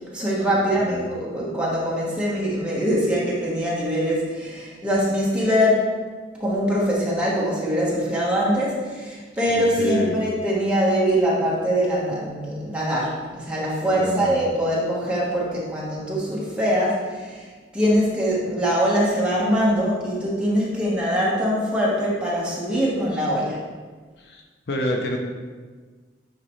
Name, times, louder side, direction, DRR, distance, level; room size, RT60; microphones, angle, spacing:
voice 1, 0.1-5.9 6.4-23.6, equal, 5° right, -6 dB, 1.3 m, -23 dB
voice 2, 9.5-10.2 13.9-14.4 24.2-25.2, equal, 60° left, 1 dB, 0.7 m, -28 dB
9.6 x 3.8 x 3.1 m, 1.5 s
head